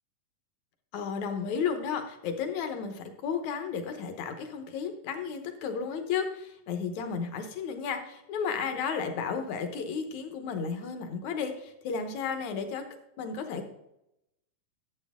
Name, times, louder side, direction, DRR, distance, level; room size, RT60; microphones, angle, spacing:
voice 1, 0.9-12.8 13.2-13.7, left 6 dB, 65° left, 7 dB, 2.1 m, -33 dB
11.5 x 7.9 x 3.6 m, 0.84 s
omnidirectional pair, 3.9 m